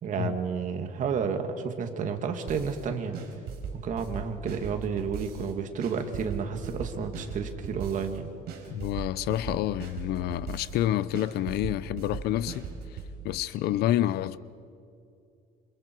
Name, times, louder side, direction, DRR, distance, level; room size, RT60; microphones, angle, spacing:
voice 1, 0.0-3.2 3.8-8.3, right 6 dB, 45° right, 2.1 m, -31 dB
sound 1, 2.5-2.8 3.1-5.5 5.8-8.2 8.5-10.8 11.1-13.1, right 6 dB, 65° right, 4.2 m, -38 dB
voice 2, 8.7-12.7 13.2-14.4, left 13 dB, 65° left, 0.7 m, -28 dB
28.0 x 27.0 x 4.6 m
cardioid pair, 140°, 18 cm